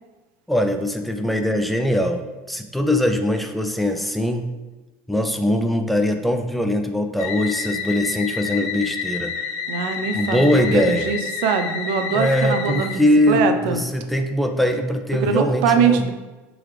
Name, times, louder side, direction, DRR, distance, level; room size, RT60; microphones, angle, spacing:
voice 1, 0.5-2.2 2.5-4.5 5.1-9.3 10.1-11.1 12.1-16.0, left 1 dB, ahead, 5 dB, 0.4 m, -21 dB
sound 1, 7.2-13.3, left 6 dB, 55° left, 0.7 m, -29 dB
voice 2, 9.7-13.8 15.2-16.1, right 6 dB, 65° right, 7 dB, 0.6 m, -22 dB
7.6 x 3.9 x 3.2 m, 1.2 s
cardioid pair, 170°, 7 cm